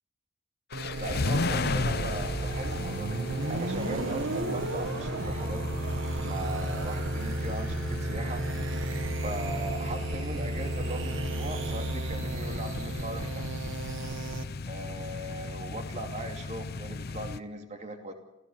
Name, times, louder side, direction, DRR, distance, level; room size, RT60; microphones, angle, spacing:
sound 1, 0.7-17.4, left 3 dB, 50° left, 0.6 m, -36 dB
sound 2, 0.7-14.4, right 2 dB, 65° right, 1.2 m, -33 dB
voice 1, 1.0-3.2 3.5-5.6 6.2-8.4 9.2-13.4 14.7-18.1, right 1 dB, 35° right, 4 dB, 2.6 m, -39 dB
sound 3, 1.8-11.8, right 1 dB, 15° left, 2.5 m, -44 dB
26.5 x 15.5 x 7.1 m, 0.97 s
head